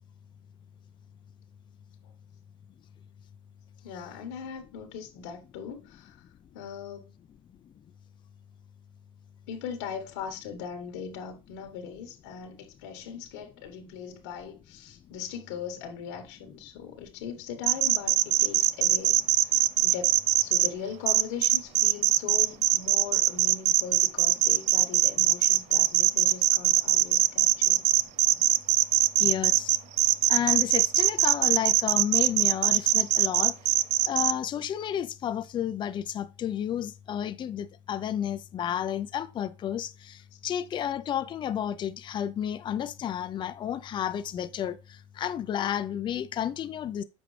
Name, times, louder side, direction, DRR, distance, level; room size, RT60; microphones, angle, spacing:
voice 1, 3.8-6.2 6.5-7.2 9.5-27.9 40.3-40.4, left 7 dB, 80° left, 1.5 m, -40 dB
sound 1, 17.6-20.7 21.1-34.3, right 14 dB, 55° right, 0.5 m, -22 dB
voice 2, 29.2-29.8 30.3-33.6 34.0-47.0, left 10 dB, 35° left, 0.6 m, -31 dB
6.8 x 5.0 x 3.3 m
supercardioid pair, 110°, 13 cm